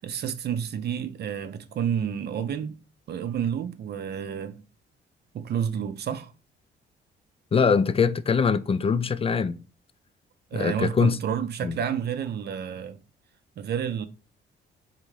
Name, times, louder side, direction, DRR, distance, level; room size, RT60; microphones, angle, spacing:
voice 1, 0.0-2.8 3.1-4.6 5.3-6.3 10.5-13.0 13.6-14.1, right 8 dB, 55° right, 0.6 m, -30 dB
voice 2, 7.5-9.6 10.5-11.2 11.6-11.8, left 5 dB, 30° left, 0.4 m, -23 dB
3.5 x 2.8 x 4.7 m
cardioid pair, 90°, 20 cm